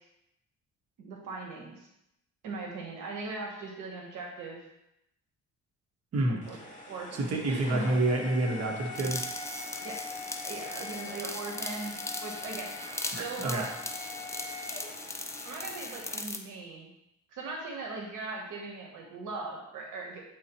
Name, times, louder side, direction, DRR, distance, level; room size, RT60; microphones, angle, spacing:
voice 1, 1.0-1.9 2.4-4.6 6.3-7.8 9.8-10.0 10.4-11.9 12.2-12.7 13.1-13.7 15.4-16.9 17.3-20.2, right 3 dB, 85° right, -1 dB, 1.2 m, -39 dB
voice 2, 6.1-6.4 7.1-9.2 13.1-13.6, right 2 dB, 55° right, 0 dB, 1.4 m, -28 dB
sound 1, 6.4-16.2, left 2 dB, 25° left, 1.5 m, -43 dB
sound 2, 8.9-16.4, left 2 dB, 10° left, 0.5 m, -39 dB
8.3 x 4.0 x 3.0 m, 0.84 s
cardioid pair, 90°, 30 cm